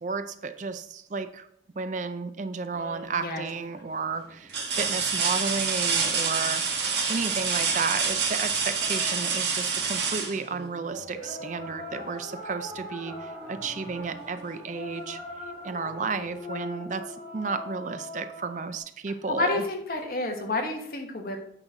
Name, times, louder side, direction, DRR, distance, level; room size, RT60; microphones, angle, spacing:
voice 1, 0.0-1.5 1.8-15.2 15.6-19.6, right 4 dB, 45° right, 10 dB, 0.4 m, -33 dB
sound 1, 2.7-3.2 3.8-3.9 4.5-11.2 13.0-13.1 13.6-14.6 15.9-16.0, right 5 dB, 75° right, 1.5 m, -28 dB
sound 2, 8.8-10.2 11.1-18.8, left 1 dB, 35° left, 2.7 m, -41 dB
voice 2, 19.3-21.4, left 2 dB, 55° left, 3 dB, 1.3 m, -29 dB
8.9 x 5.9 x 3.7 m, 0.70 s
head